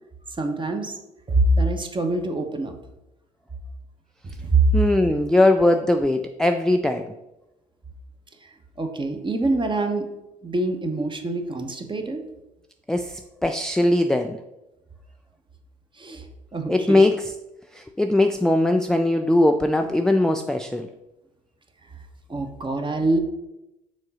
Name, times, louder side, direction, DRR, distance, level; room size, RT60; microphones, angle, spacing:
voice 1, 0.4-0.9 1.3-2.8 4.2-4.6 8.8-10.1 10.4-12.2 16.0-16.2 16.5-17.1 22.3-23.2, right 2 dB, 25° right, 5 dB, 1.0 m, -24 dB
voice 2, 4.7-7.1 12.9-14.4 16.7-17.2 17.7-20.9, left 1 dB, 5° left, 5 dB, 0.4 m, -20 dB
6.4 x 3.8 x 4.2 m, 0.94 s
hypercardioid pair, 50°, 20 cm